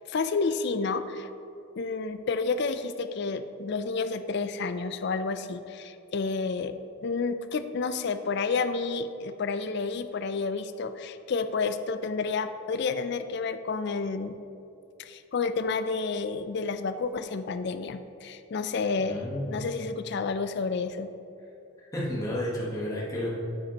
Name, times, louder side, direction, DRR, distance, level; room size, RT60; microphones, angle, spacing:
voice 1, 0.1-1.3 1.8-6.7 7.0-14.4 15.0-19.2 19.5-21.1, left 4 dB, 50° left, 10 dB, 0.4 m, -30 dB
voice 2, 19.0-19.6 21.9-23.4, left 1 dB, 15° left, -6 dB, 1.2 m, -31 dB
9.5 x 8.7 x 2.9 m, 2.7 s
head